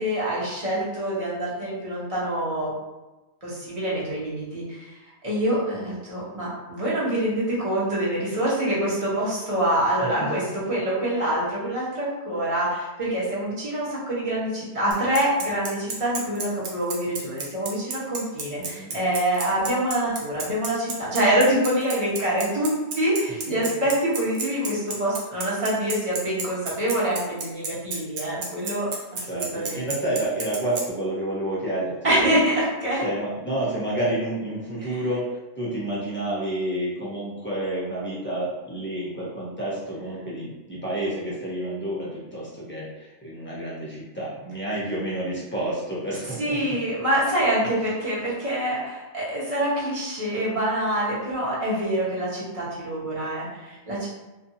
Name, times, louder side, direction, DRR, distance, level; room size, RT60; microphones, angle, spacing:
voice 1, 0.0-2.7 3.4-5.0 5.2-29.9 32.0-33.0 34.8-35.0 46.4-54.1, right 1 dB, 30° right, -7 dB, 0.9 m, -25 dB
Bicycle, 14.9-30.8, right 4 dB, 75° right, 0.9 m, -31 dB
voice 2, 18.6-19.0 29.3-32.4 33.0-46.6, right 1 dB, 15° left, -7 dB, 0.6 m, -29 dB
2.5 x 2.3 x 2.6 m, 1.1 s
omnidirectional pair, 1.2 m